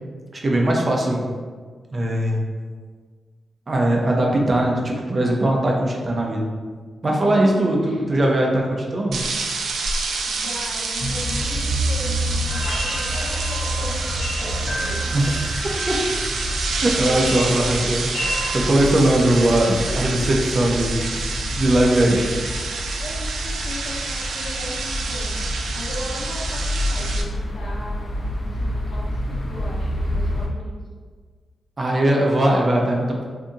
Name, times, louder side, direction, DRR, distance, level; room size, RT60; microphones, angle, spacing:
voice 1, 0.4-1.2 1.9-2.4 3.7-6.5 7.0-9.2 15.1-15.2 15.5-15.6 15.9-16.0 16.8-18.1 18.5-21.2 21.6-22.3 31.8-33.2, right 1 dB, 35° right, -1 dB, 0.5 m, -20 dB
voice 2, 7.2-8.1 10.2-15.2 19.8-20.3 23.0-25.3 25.7-30.7, left 1 dB, 90° left, -6 dB, 1.0 m, -37 dB
sound 1, 9.1-27.2, right 4 dB, 85° right, 0.3 m, -28 dB
sound 2, 11.0-30.5, equal, 35° left, 0.4 m, -28 dB
sound 3, 12.5-18.8, equal, 50° left, 0.8 m, -32 dB
3.5 x 2.7 x 2.6 m, 1.5 s
wide cardioid pair, 115°, 0 cm